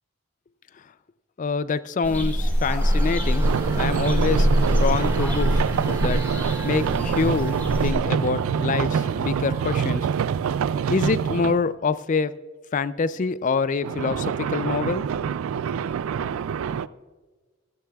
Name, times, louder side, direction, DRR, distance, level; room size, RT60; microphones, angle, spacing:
voice 1, 1.4-3.4 3.7-6.2 6.6-10.1 10.9-12.3 12.7-15.0, left 4 dB, 35° left, 16 dB, 0.4 m, -26 dB
sound 1, 2.0-7.9, equal, 10° left, 1.9 m, -24 dB
sound 2, 2.8-9.8, right 1 dB, 15° right, 0.7 m, -34 dB
sound 3, 3.4-11.6 13.8-16.9, right 7 dB, 75° right, 0.3 m, -26 dB
15.5 x 14.0 x 2.3 m, 1.3 s
head